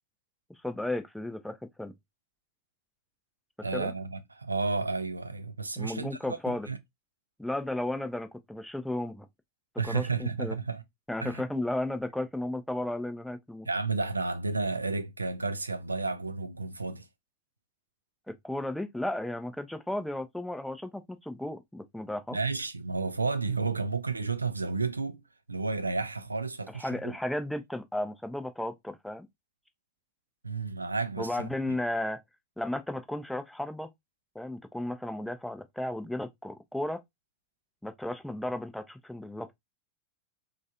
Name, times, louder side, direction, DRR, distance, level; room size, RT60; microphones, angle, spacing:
voice 1, 0.5-1.9 3.7-3.9 5.8-6.7 7.4-9.3 9.8-10.6 11.1-13.7 18.3-22.4 26.7-29.3 31.2-32.2 32.6-33.9 34.3-37.0 37.8-39.6, left 1 dB, 5° left, 0.4 m, -34 dB
voice 2, 3.6-6.8 9.8-10.8 11.2-11.4 13.7-17.1 22.3-25.2 25.5-27.2 30.4-31.8, right 4 dB, 80° right, 0.4 m, -32 dB
3.1 x 2.4 x 2.6 m
figure-of-eight pair, 90°, 0 cm